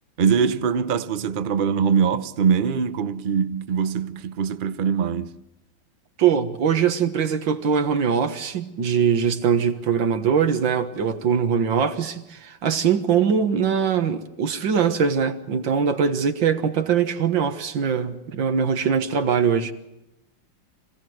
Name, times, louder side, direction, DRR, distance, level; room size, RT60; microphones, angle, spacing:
voice 1, 0.2-5.4, right 6 dB, 55° right, 0.5 m, -22 dB
voice 2, 6.2-19.7, right 7 dB, 70° right, 2.1 m, -22 dB
25.5 x 17.0 x 7.8 m
omnidirectional pair, 2.2 m